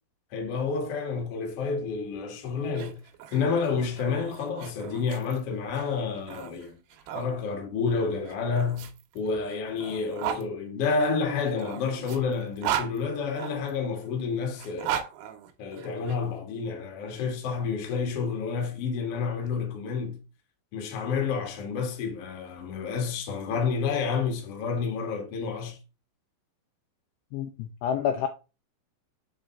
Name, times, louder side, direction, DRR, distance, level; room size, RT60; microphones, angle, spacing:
voice 1, 0.3-3.0 3.3-6.8 7.1-15.0 15.6-20.2 20.7-25.8, left 5 dB, 60° left, 1.6 m, -29 dB
sound 1, 2.6-7.3 8.2-10.4 11.4-13.7 14.5-16.2, right 10 dB, 75° right, 2.6 m, -36 dB
voice 2, 27.3-28.3, left 8 dB, 90° left, 2.4 m, -28 dB
8.0 x 4.4 x 3.5 m
omnidirectional pair, 5.8 m